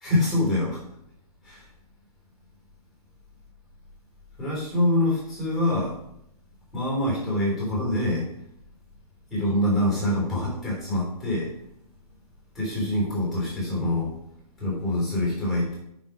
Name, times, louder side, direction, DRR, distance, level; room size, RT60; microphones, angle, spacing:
voice 1, 0.0-0.8 1.4-1.7 4.4-6.0 6.7-8.3 9.3-11.5 12.5-14.1 14.6-15.8, left 1 dB, ahead, -4 dB, 3.6 m, -25 dB
7.3 x 5.8 x 6.0 m, 0.76 s
hypercardioid pair, 175°, 20 cm